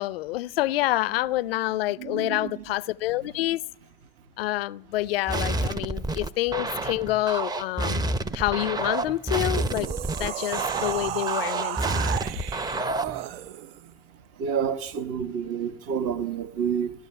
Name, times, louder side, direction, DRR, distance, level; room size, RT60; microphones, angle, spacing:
voice 1, 0.0-3.6 4.4-8.1 8.3-9.9 10.2-12.1, left 17 dB, 85° left, 0.5 m, -27 dB
voice 2, 2.0-2.5 14.4-16.9, right 7 dB, 55° right, 1.4 m, -29 dB
sound 1, 5.3-13.2, right 2 dB, 15° right, 0.6 m, -29 dB
sound 2, 9.2-13.8, right 12 dB, 80° right, 0.6 m, -33 dB
16.5 x 12.5 x 5.7 m
hypercardioid pair, 95°, 29 cm